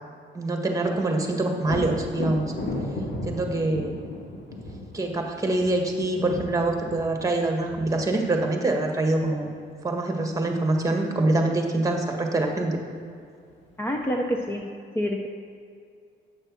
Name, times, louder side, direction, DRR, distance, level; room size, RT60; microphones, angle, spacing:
voice 1, 0.3-2.4 3.2-3.9 4.9-9.5 9.8-12.8, right 2 dB, 15° right, 2 dB, 1.6 m, -25 dB
Thunder, 1.6-9.3 12.9-13.0 13.5-14.4, left 1 dB, 65° left, 2.4 m, -35 dB
voice 2, 13.8-14.6 14.9-15.3, equal, 10° left, 1 dB, 0.7 m, -27 dB
9.0 x 6.6 x 6.0 m, 2.3 s
cardioid pair, 90°, 20 cm